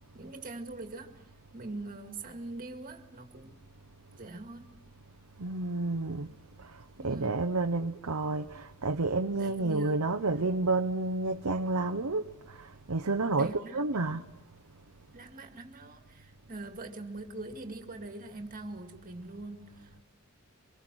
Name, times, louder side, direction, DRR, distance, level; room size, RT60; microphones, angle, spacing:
voice 1, 0.1-1.2 1.5-3.6 4.2-4.7 7.0-7.5 9.4-10.1 13.3-14.2 15.1-20.0, right 2 dB, 40° right, 2.1 m, -43 dB
voice 2, 5.4-6.3 6.6-14.2, right 3 dB, 90° right, 0.9 m, -30 dB
25.0 x 23.0 x 6.2 m
head